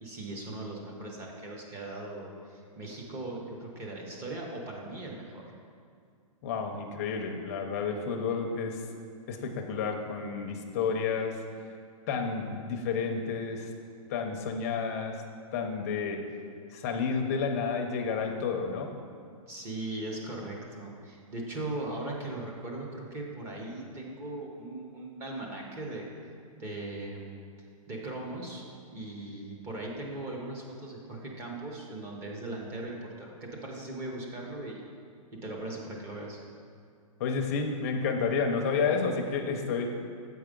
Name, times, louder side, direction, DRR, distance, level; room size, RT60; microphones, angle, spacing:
voice 1, 0.0-5.4 19.5-26.1 26.6-27.2 27.9-28.6 28.9-34.8 35.3-36.4, right 2 dB, 15° right, -1 dB, 0.7 m, -39 dB
voice 2, 6.4-8.8 9.3-11.4 12.1-13.7 14.1-15.2 15.5-16.2 16.7-18.9 37.2-39.9, left 5 dB, 25° left, 3 dB, 0.6 m, -30 dB
8.0 x 4.7 x 5.1 m, 2.3 s
hypercardioid pair, 170°, 18 cm